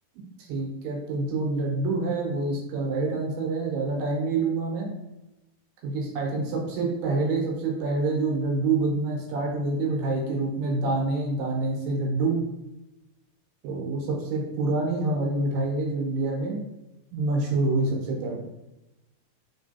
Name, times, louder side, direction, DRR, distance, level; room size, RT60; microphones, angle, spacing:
voice 1, 0.4-4.9 5.8-12.5 13.6-16.6 17.1-18.5, right 3 dB, 90° right, -1 dB, 2.9 m, -27 dB
5.9 x 3.3 x 2.7 m, 0.94 s
omnidirectional pair, 4.5 m